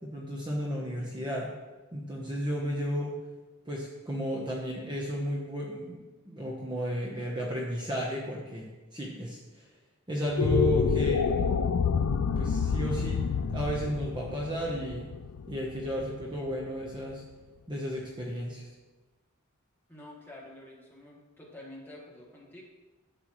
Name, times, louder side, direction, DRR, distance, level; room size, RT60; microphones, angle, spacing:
voice 1, 0.0-1.5 1.9-3.2 3.7-9.7 10.1-11.6 12.4-13.3 13.5-15.1 15.5-17.2 17.7-18.7, equal, 20° right, -3 dB, 0.9 m, -33 dB
sound 1, 10.2-16.6, left 6 dB, 80° left, 0.4 m, -28 dB
voice 2, 19.9-22.6, left 1 dB, 10° left, -4 dB, 1.6 m, -48 dB
11.0 x 7.9 x 3.1 m, 1.2 s
head